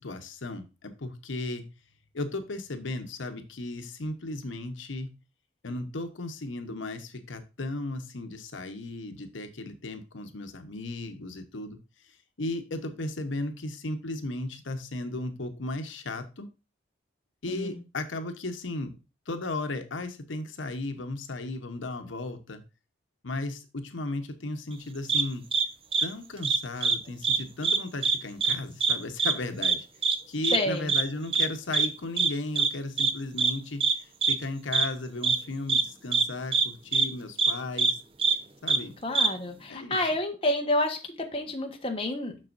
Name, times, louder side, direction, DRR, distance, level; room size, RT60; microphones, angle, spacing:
voice 1, 0.0-1.7 2.1-5.1 5.6-11.8 12.4-16.5 17.4-18.9 19.3-22.6 23.2-25.4 26.0-29.8 30.3-38.0 38.6-38.9 39.7-40.0, left 2 dB, 85° left, 7 dB, 1.0 m, -35 dB
voice 2, 17.5-17.8 30.5-30.9 39.0-42.5, left 1 dB, 30° left, 3 dB, 1.2 m, -29 dB
sound 1, 25.1-25.2 25.5-25.6 25.9-26.0 26.4-27.0 27.2-27.4 27.6-28.2 28.4-28.5 28.8-28.9 29.2-29.3 29.6-29.8 30.0-30.2 30.4-30.6 30.9-31.0 31.3-31.5 31.7-31.9 32.2-32.3 32.6-32.7 33.0-33.1 33.4-33.5 33.8-33.9 34.2-34.3 34.7-34.9 35.2-35.4 35.7-35.8 36.1-36.2 36.5-36.7 36.9-37.1 37.4-37.5 37.8-37.9 38.2-38.3 38.7-38.8 39.1-39.3, right 5 dB, 30° right, 0.7 m, -23 dB
7.5 x 6.2 x 2.6 m, 0.30 s
head